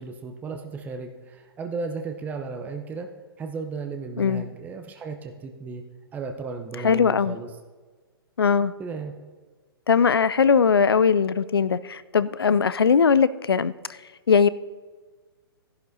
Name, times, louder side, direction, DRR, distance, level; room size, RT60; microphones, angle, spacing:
voice 1, 0.0-3.1 3.4-5.8 6.1-7.5 8.8-9.1, right 4 dB, 10° right, 4 dB, 0.7 m, -34 dB
voice 2, 6.8-7.4 8.4-8.7 9.9-13.7 14.3-14.5, left 6 dB, 75° left, 16 dB, 0.4 m, -20 dB
16.0 x 11.0 x 2.7 m, 1.4 s
figure-of-eight pair, 120°, 13 cm